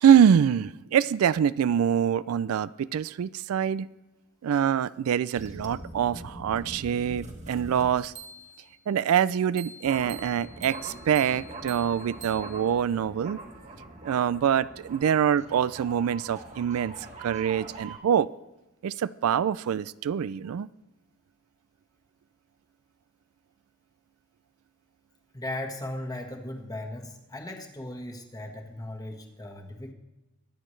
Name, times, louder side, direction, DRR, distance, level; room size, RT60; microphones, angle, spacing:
voice 1, 0.0-3.9 4.4-8.1 8.9-13.4 14.0-16.9 17.2-18.3 18.8-20.7, right 8 dB, 75° right, 18 dB, 0.3 m, -24 dB
sound 1, 5.3-8.7 9.6-18.0, right 2 dB, 35° right, 1.4 m, -43 dB
voice 2, 25.3-29.9, left 1 dB, 15° left, 3 dB, 1.4 m, -37 dB
23.5 x 9.0 x 3.2 m, 1.0 s
head